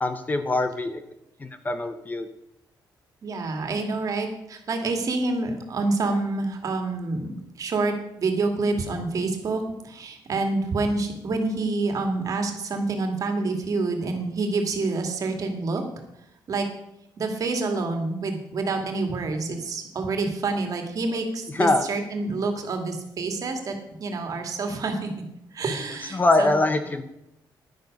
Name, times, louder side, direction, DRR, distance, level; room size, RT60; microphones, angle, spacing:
voice 1, 0.0-1.0 1.4-2.3 21.5-21.8 26.1-27.0, left 2 dB, 20° left, 9 dB, 0.7 m, -23 dB
voice 2, 3.2-7.3 7.6-15.8 16.5-16.7 17.2-25.1 25.5-26.6, right 3 dB, 45° right, 4 dB, 2.2 m, -27 dB
11.0 x 10.5 x 5.3 m, 0.84 s
cardioid pair, 150°, 8 cm